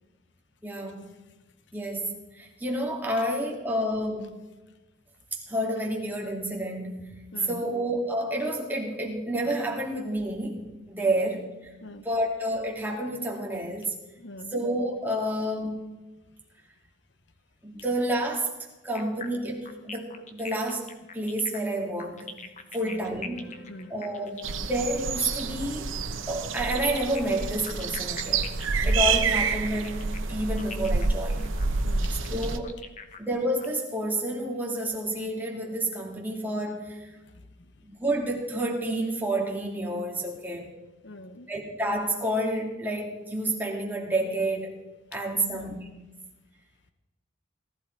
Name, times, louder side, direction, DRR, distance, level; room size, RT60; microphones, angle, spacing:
voice 1, 0.6-1.0 1.7-4.4 5.3-7.1 7.5-11.4 12.0-13.9 14.5-15.9 17.6-18.5 18.8-20.9 21.1-23.4 23.9-25.9 26.3-28.5 28.8-31.5 32.3-32.7 33.2-37.1 37.9-40.7 41.5-44.8 45.1-45.7, right 1 dB, 10° right, -1 dB, 2.4 m, -29 dB
voice 2, 7.3-7.8 11.0-11.2 11.8-12.0 14.2-14.6 22.8-24.3 31.8-32.2 37.3-37.4 41.0-41.5 45.3-45.8, left 1 dB, 60° left, 9 dB, 0.9 m, -44 dB
sound 1, 19.0-25.7 27.0-33.7, left 5 dB, 35° left, 1.1 m, -43 dB
sound 2, 24.4-32.6, right 4 dB, 80° right, 0.9 m, -28 dB
18.5 x 14.0 x 4.6 m, 1.1 s
head